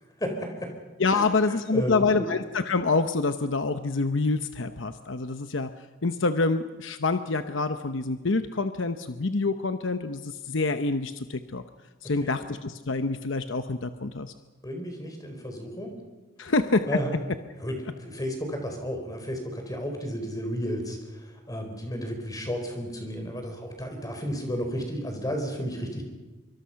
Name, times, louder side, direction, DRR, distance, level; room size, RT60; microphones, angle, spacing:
voice 1, 0.2-0.7 1.1-2.2 12.2-12.3 14.6-15.9 16.9-17.2 17.6-26.0, equal, 20° left, 4 dB, 4.6 m, -33 dB
voice 2, 1.0-5.7 6.0-11.6 12.0-14.3 16.4-16.9, left 3 dB, 70° left, 9 dB, 0.9 m, -26 dB
25.0 x 24.0 x 5.8 m, 1.2 s
head